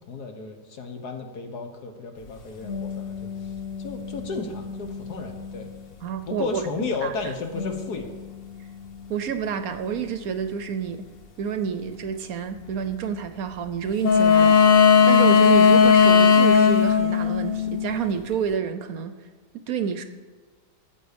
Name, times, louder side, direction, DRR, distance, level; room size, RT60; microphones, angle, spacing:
voice 1, 0.1-3.2 3.8-5.7 6.3-8.1, left 4 dB, 70° left, 5 dB, 1.8 m, -33 dB
sound 1, 2.6-5.7 7.5-8.3 14.0-18.1, left 6 dB, 45° left, 0.8 m, -19 dB
voice 2, 6.0-6.6 7.0-7.1 9.1-11.0 11.4-19.1 19.7-20.0, right 7 dB, 65° right, 10 dB, 1.0 m, -29 dB
13.0 x 8.3 x 5.1 m, 1.4 s
omnidirectional pair, 1.8 m